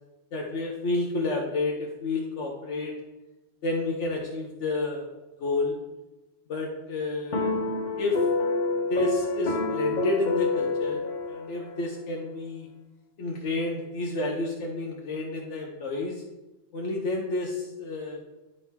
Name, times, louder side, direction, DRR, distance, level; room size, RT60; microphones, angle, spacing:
voice 1, 0.3-2.9 3.6-5.1 5.4-5.8 6.5-7.6 8.0-8.2 8.9-12.7 13.2-16.2 16.7-18.2, left 2 dB, 70° left, 0 dB, 1.1 m, -30 dB
sound 1, 7.3-11.8, left 3 dB, 45° left, 0.8 m, -27 dB
9.7 x 4.3 x 3.5 m, 1.1 s
omnidirectional pair, 1.3 m